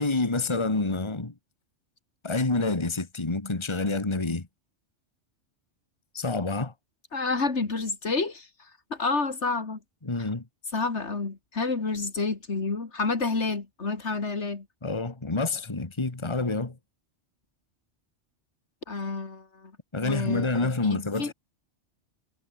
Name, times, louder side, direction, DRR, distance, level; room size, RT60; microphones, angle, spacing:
voice 1, 0.0-1.3 2.2-4.5 6.1-6.7 10.0-10.4 14.8-16.8 19.9-21.3, left 3 dB, 25° left, 1.8 m, -28 dB
voice 2, 7.1-9.8 10.2-10.3 10.7-14.7 18.9-19.7 20.0-21.3, left 4 dB, 75° left, 2.8 m, -29 dB
omnidirectional pair, 1.2 m